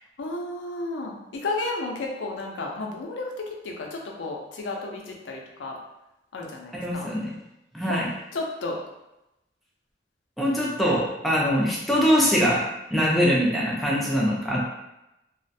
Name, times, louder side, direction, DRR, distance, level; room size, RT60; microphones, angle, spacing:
voice 1, 0.2-5.8 6.3-7.1 7.9-8.0 8.3-8.8, left 2 dB, 90° left, 0 dB, 0.5 m, -32 dB
voice 2, 6.7-7.3 7.7-8.1 10.4-12.6 12.9-14.6, equal, ahead, -4 dB, 0.4 m, -23 dB
2.4 x 2.1 x 2.6 m, 0.91 s
head